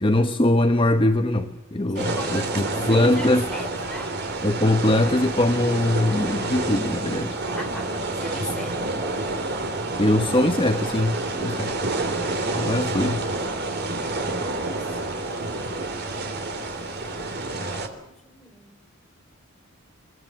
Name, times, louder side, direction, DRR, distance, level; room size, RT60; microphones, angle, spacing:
voice 1, 0.0-3.4 4.4-7.4 10.0-11.8 12.5-13.2, left 1 dB, 25° left, 6 dB, 1.1 m, -22 dB
voice 2, 1.9-4.1 7.5-7.9 8.1-8.9 11.5-11.6 14.6-15.2 16.7-18.8, left 1 dB, 5° left, 2 dB, 4.2 m, -39 dB
sound 1, 1.9-17.9, right 2 dB, 50° right, 3.4 m, -28 dB
sound 2, 4.4-14.6, right 2 dB, 80° right, 3.3 m, -48 dB
23.0 x 23.0 x 7.7 m, 0.93 s
head